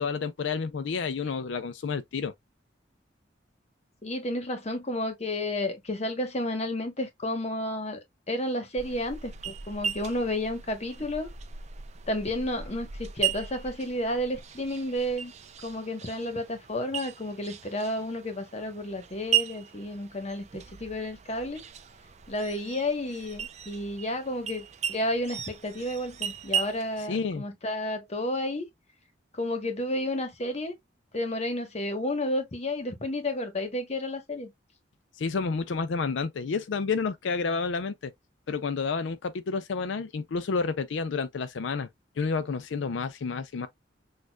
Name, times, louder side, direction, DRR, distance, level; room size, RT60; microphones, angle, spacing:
voice 1, 0.0-2.3 27.0-27.4 35.2-38.1 38.5-41.9 42.2-43.7, left 5 dB, 85° left, 0.4 m, -30 dB
voice 2, 4.0-8.0 8.3-11.3 12.1-15.3 15.6-21.6 22.3-28.7 29.3-30.7 31.1-34.5, left 1 dB, 35° left, 1.1 m, -31 dB
sound 1, 8.8-27.1, right 9 dB, 40° right, 0.5 m, -36 dB
6.2 x 2.5 x 2.2 m
head